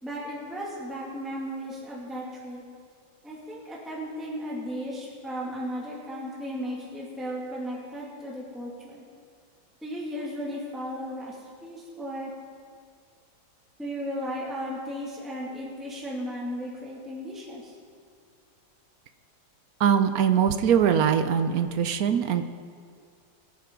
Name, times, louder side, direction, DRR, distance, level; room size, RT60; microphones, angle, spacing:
voice 1, 0.0-2.6 3.2-9.0 9.8-12.3 13.8-17.7, equal, ahead, -5 dB, 2.0 m, -35 dB
voice 2, 19.8-22.4, right 8 dB, 65° right, 9 dB, 0.9 m, -22 dB
23.5 x 9.3 x 3.8 m, 2.1 s
omnidirectional pair, 2.1 m